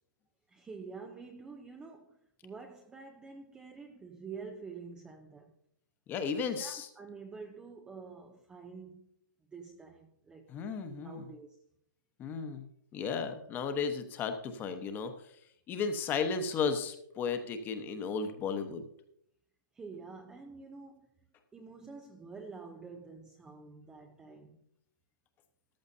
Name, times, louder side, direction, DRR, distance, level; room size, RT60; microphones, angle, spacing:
voice 1, 0.5-5.5 6.4-9.1 9.5-10.5 10.9-11.6 19.7-21.1 21.5-24.6, right 4 dB, 10° right, 0.5 m, -48 dB
voice 2, 6.1-6.9 10.5-11.2 12.2-15.1 15.7-18.8, left 5 dB, 20° left, 1.0 m, -34 dB
14.0 x 11.5 x 2.7 m
hypercardioid pair, 145°, 11 cm